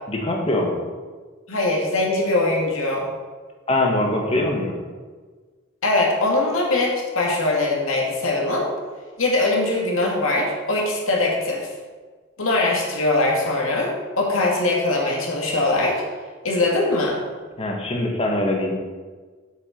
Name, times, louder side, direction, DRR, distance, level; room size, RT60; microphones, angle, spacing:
voice 1, 0.1-0.8 3.7-4.8 17.6-18.7, left 1 dB, 30° left, 0 dB, 1.5 m, -22 dB
voice 2, 1.5-3.1 5.8-8.7 9.2-11.7 12.4-16.0 16.4-17.2, left 2 dB, 85° left, -1 dB, 2.2 m, -21 dB
7.9 x 7.4 x 5.2 m, 1.4 s
head